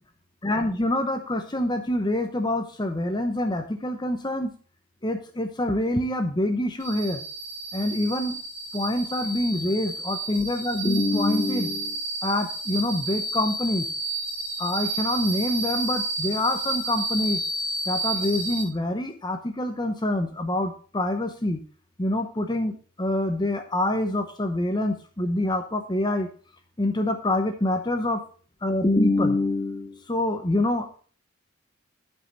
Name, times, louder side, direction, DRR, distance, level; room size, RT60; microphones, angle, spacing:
voice 1, 0.4-4.5 5.0-7.2 7.7-8.4 8.7-13.9 14.6-17.4 17.9-21.6 22.0-26.3 26.8-28.2 28.6-31.0, left 1 dB, 20° left, 6 dB, 0.8 m, -26 dB
sound 1, 6.8-18.6, right 2 dB, 15° right, 5.1 m, -31 dB
11.0 x 5.6 x 4.1 m, 0.42 s
head